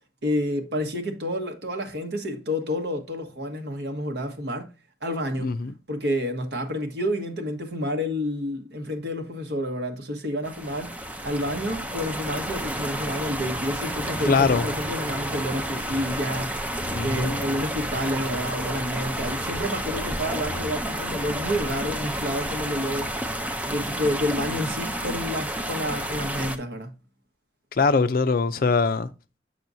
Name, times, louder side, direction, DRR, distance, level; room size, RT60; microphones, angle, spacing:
voice 1, 0.2-4.7 5.0-5.6 5.9-10.9 11.2-16.5 17.0-23.1 23.7-26.9, equal, 70° right, 1.3 m, -29 dB
voice 2, 5.4-5.7 14.3-14.7 16.9-17.4 27.7-29.1, left 4 dB, 55° left, 0.5 m, -22 dB
sound 1, 10.4-26.6, right 1 dB, 10° right, 0.5 m, -30 dB
6.9 x 6.0 x 2.6 m
head